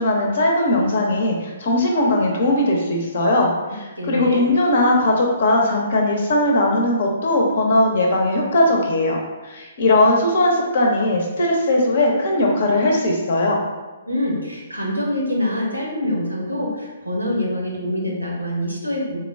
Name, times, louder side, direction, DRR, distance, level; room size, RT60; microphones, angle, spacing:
voice 1, 0.0-9.2 9.4-13.6, left 1 dB, 50° left, 0 dB, 0.7 m, -19 dB
voice 2, 4.0-4.5 14.1-19.2, left 1 dB, 85° right, -2 dB, 0.9 m, -25 dB
3.6 x 2.2 x 3.4 m, 1.2 s
figure-of-eight pair, 125°, 0 cm